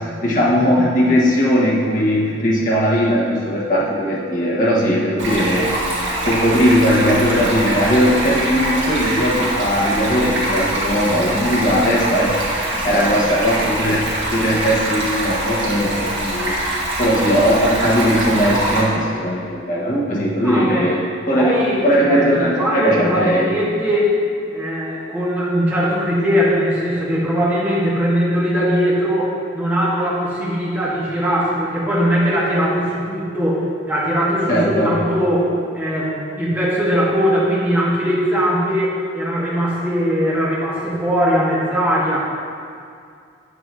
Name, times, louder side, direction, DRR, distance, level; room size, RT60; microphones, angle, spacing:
voice 1, 0.0-5.7 6.2-14.0 14.3-16.6 17.0-21.0 21.3-23.5 34.5-34.9, equal, 45° left, -6 dB, 1.4 m, -18 dB
Stream, 5.2-18.8, right 1 dB, 85° right, 1.6 m, -23 dB
voice 2, 20.4-20.9 21.3-24.1 24.5-42.3, equal, 10° right, -7 dB, 1.3 m, -20 dB
8.2 x 3.0 x 6.1 m, 2.3 s
head